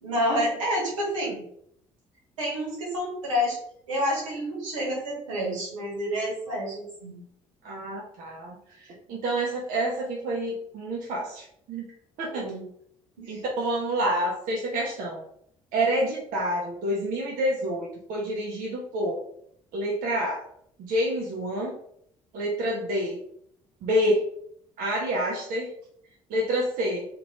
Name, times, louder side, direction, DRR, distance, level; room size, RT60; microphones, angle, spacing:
voice 1, 0.0-1.4 2.4-3.6 3.9-7.2 12.3-12.7 13.2-13.4, equal, 80° right, -4 dB, 1.1 m, -29 dB
voice 2, 7.6-11.9 12.2-12.5 13.3-15.2 15.7-19.2 19.7-20.4 20.8-21.8 22.3-23.2 23.8-24.2 24.8-25.7 26.3-27.1, right 1 dB, 55° right, -3 dB, 0.7 m, -28 dB
2.9 x 2.5 x 3.0 m, 0.68 s
figure-of-eight pair, 50°, 16 cm